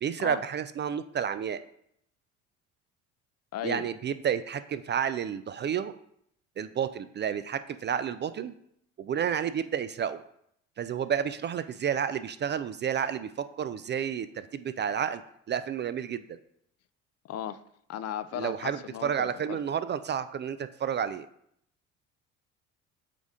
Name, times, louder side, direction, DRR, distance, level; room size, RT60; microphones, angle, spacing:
voice 1, 0.0-1.6 3.6-5.9 6.6-8.5 9.0-10.2 10.8-15.2 15.5-16.4 18.3-21.3, right 8 dB, 30° right, 12 dB, 0.4 m, -31 dB
voice 2, 3.5-3.9 17.2-17.6 17.9-19.6, left 11 dB, 45° left, 14 dB, 0.5 m, -36 dB
8.3 x 3.5 x 3.7 m, 0.71 s
hypercardioid pair, 60°, 38 cm